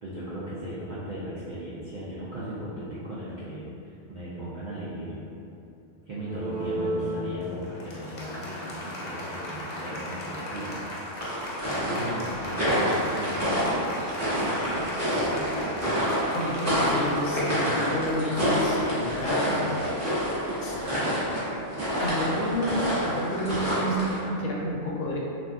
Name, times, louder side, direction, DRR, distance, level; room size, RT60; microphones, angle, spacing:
voice 1, 0.0-5.2 6.1-10.8 11.0-11.2 11.6-13.8 14.1-15.9 19.4-19.9 20.7-21.3, right 1 dB, 65° right, -10 dB, 0.4 m, -37 dB
Applause, 6.2-20.3, equal, 65° left, 0.4 m, -37 dB
sound 1, 11.2-24.2, equal, 15° right, 0.7 m, -27 dB
voice 2, 16.3-19.8 20.6-20.8 22.0-25.2, equal, 80° left, -3 dB, 1.0 m, -30 dB
2.5 x 2.2 x 3.4 m, 2.6 s
omnidirectional pair, 1.3 m